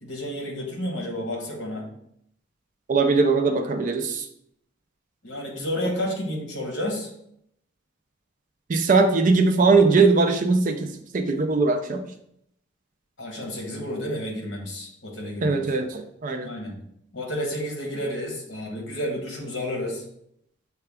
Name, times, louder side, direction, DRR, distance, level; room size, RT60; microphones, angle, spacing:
voice 1, 0.0-1.8 5.2-7.1 13.2-15.8 16.4-16.8 17.1-20.0, equal, 60° left, 0 dB, 1.2 m, -31 dB
voice 2, 2.9-4.3 8.7-12.0 15.4-16.5, right 3 dB, 40° right, 7 dB, 0.4 m, -20 dB
6.6 x 2.3 x 3.4 m, 0.73 s
head